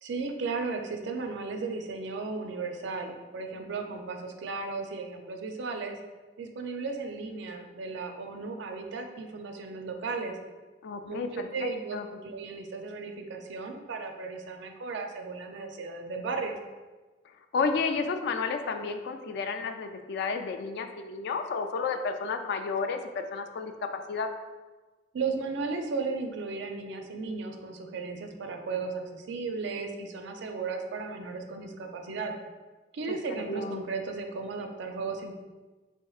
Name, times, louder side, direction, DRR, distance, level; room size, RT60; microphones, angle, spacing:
voice 1, 0.0-6.0 6.4-10.4 11.0-16.6 25.1-32.3 32.9-35.4, right 4 dB, 70° right, 4 dB, 0.4 m, -35 dB
voice 2, 10.8-12.0 17.5-24.3 33.1-33.2 33.5-33.8, left 4 dB, 60° left, 7 dB, 0.3 m, -32 dB
4.3 x 3.6 x 2.3 m, 1.3 s
head